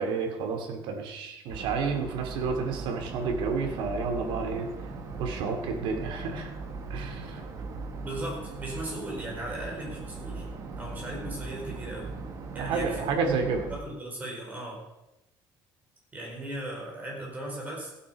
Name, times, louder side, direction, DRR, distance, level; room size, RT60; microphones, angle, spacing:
voice 1, 0.0-4.7 5.2-6.5 6.9-7.4 12.6-13.7, right 5 dB, 70° right, 4 dB, 2.4 m, -30 dB
sound 1, 1.5-13.8, right 3 dB, 40° right, 1.7 m, -39 dB
voice 2, 8.0-10.4 10.8-12.1 12.5-13.0 13.4-14.8 16.1-17.9, right 1 dB, 20° right, -2 dB, 5.0 m, -37 dB
16.0 x 8.6 x 5.3 m, 0.92 s
cardioid pair, 160°, 9 cm